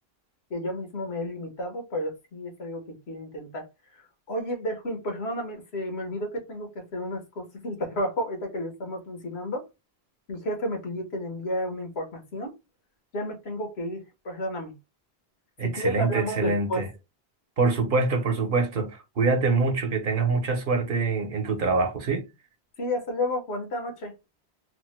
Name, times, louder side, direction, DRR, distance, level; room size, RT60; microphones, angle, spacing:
voice 1, 0.5-3.7 3.9-4.0 4.3-9.6 10.3-12.5 13.1-14.7 15.6-16.8 22.8-24.1, left 1 dB, 90° left, 1.4 m, -32 dB
voice 2, 15.6-16.9 17.6-22.3, right 4 dB, 60° right, 0.9 m, -25 dB
3.3 x 2.1 x 3.1 m
omnidirectional pair, 1.1 m